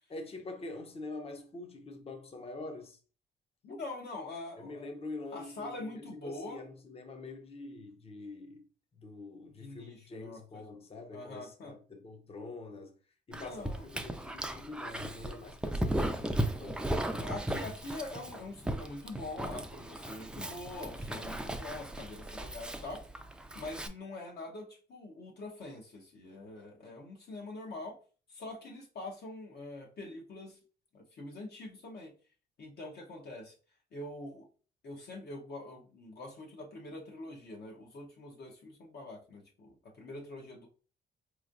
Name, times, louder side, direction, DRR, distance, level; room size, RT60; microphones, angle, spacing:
voice 1, 0.1-3.0 4.6-8.6 9.0-12.9 13.3-17.0, left 3 dB, 30° left, 0.7 m, -45 dB
voice 2, 3.6-4.9 5.3-6.6 9.6-10.7 11.1-11.7 13.3-13.8 17.2-23.1 23.5-28.0 28.3-30.6 30.9-32.1 32.6-33.5 33.9-34.5 34.8-40.7, left 2 dB, 55° left, 1.0 m, -44 dB
Dog, 13.3-23.9, right 1 dB, 5° right, 0.4 m, -36 dB
4.4 x 3.1 x 2.5 m
cardioid pair, 90°, 20 cm